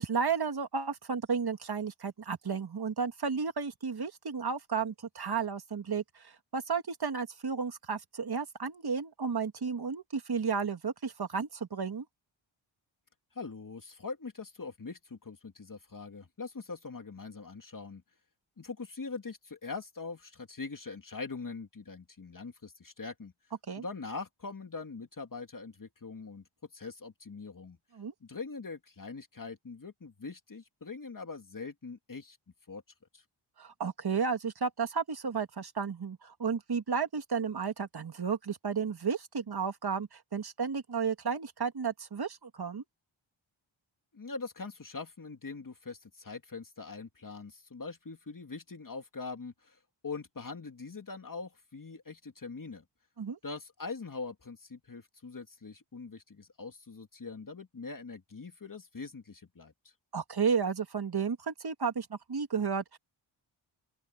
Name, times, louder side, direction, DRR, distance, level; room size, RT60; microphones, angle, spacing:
voice 1, 0.0-12.1 23.7-23.8 27.9-28.1 33.6-42.8 53.2-53.4 60.1-63.0, right 6 dB, 50° right, 2.3 m, -33 dB
voice 2, 13.3-18.0 18.6-23.3 23.8-26.4 26.7-27.8 28.2-32.4 32.7-32.8 33.1-33.2 44.1-52.8 53.4-59.9, left 4 dB, 40° left, 2.7 m, -42 dB
open air
cardioid pair, 70°, 48 cm